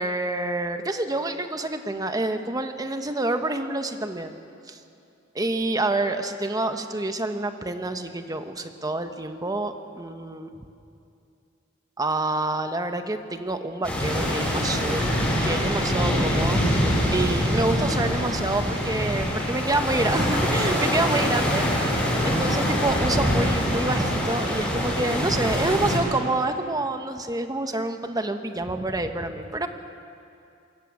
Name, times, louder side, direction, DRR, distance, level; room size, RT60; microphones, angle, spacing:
voice 1, 0.0-4.4 4.7-4.8 5.3-10.6 12.0-15.1 15.4-16.6 17.1-21.6 22.2-29.7, right 2 dB, 20° right, 7 dB, 1.1 m, -27 dB
sound 1, 13.8-26.0, equal, 5° left, 6.6 m, -24 dB
24.5 x 14.0 x 8.6 m, 2.6 s
head